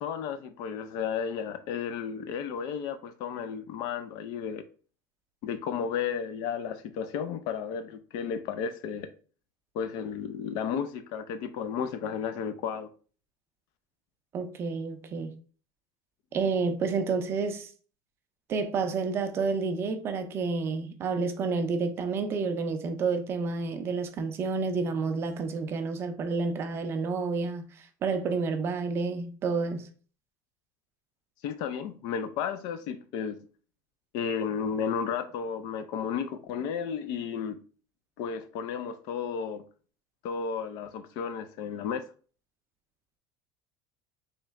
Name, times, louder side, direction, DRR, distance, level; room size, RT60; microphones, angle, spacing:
voice 1, 0.0-4.7 5.4-9.1 9.7-12.9 31.4-33.4 34.1-37.6 38.2-39.6 40.2-42.0, left 7 dB, 50° left, 0.4 m, -33 dB
voice 2, 14.3-15.3 16.3-17.7 18.5-29.9, right 4 dB, 30° right, 0.4 m, -30 dB
3.2 x 3.0 x 3.5 m
cardioid pair, 165°, 9 cm